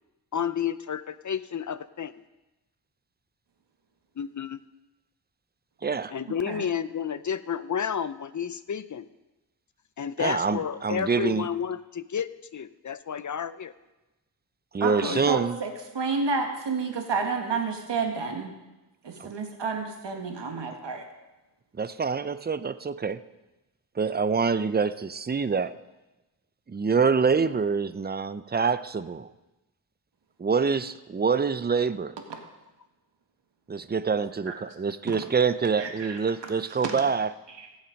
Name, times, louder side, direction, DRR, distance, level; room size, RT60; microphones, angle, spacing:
voice 1, 0.3-2.2 4.2-4.6 5.9-9.0 10.0-13.7 15.0-15.3, left 8 dB, 45° left, 15 dB, 0.6 m, -31 dB
voice 2, 5.8-6.1 10.2-11.5 14.7-15.6 19.2-19.3 21.8-23.2 24.0-25.8 26.7-29.3 30.4-32.1 33.7-37.3, right 5 dB, 25° right, 14 dB, 0.5 m, -26 dB
voice 3, 14.8-18.5 19.0-21.0 32.3-32.4 34.5-34.6 35.1-35.2 35.8-36.2 36.8-36.9 37.6-37.7, right 4 dB, 80° right, 3 dB, 1.8 m, -30 dB
16.0 x 7.3 x 5.2 m, 1.0 s
wide cardioid pair, 80°, 42 cm